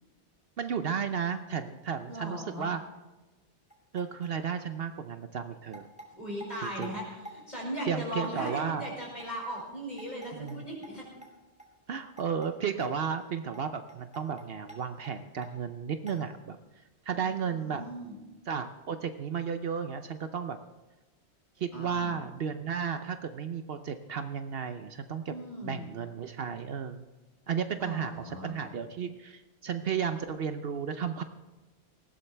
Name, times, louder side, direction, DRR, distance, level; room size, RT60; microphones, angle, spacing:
voice 1, 0.6-2.8 3.9-5.9 6.6-6.9 7.9-8.8 10.3-10.6 11.9-17.8 18.5-20.6 21.6-25.3 25.6-27.0 27.5-31.2, right 7 dB, 65° right, 8 dB, 0.9 m, -33 dB
voice 2, 2.1-2.7 6.1-11.1 17.1-18.2 21.7-22.2 25.3-25.9 27.8-28.6, equal, 40° left, -3 dB, 5.4 m, -38 dB
sound 1, 3.7-4.5 5.1-5.2 5.7-7.4 7.8-7.9 8.2-8.6 8.8-10.6 10.8-10.9 11.2-11.3 11.6-11.7 11.9-12.5 12.8-12.9 13.2-13.3 13.5-13.6 13.9-15.1 15.4-15.5 16.1-16.2, right 1 dB, 5° right, 2.7 m, -48 dB
19.0 x 15.5 x 3.3 m, 1.1 s
omnidirectional pair, 1.1 m